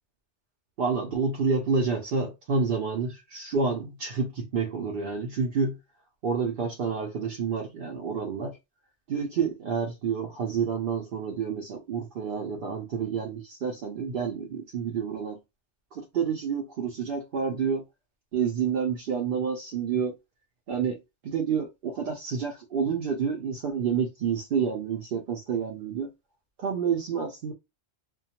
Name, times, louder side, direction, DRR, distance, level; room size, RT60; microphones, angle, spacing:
voice 1, 0.8-5.8 6.2-8.6 9.1-15.4 15.9-17.8 18.3-20.1 20.7-21.0 21.2-26.1 26.6-27.5, right 6 dB, 60° right, 0.7 m, -29 dB
2.2 x 2.2 x 2.8 m
omnidirectional pair, 1.2 m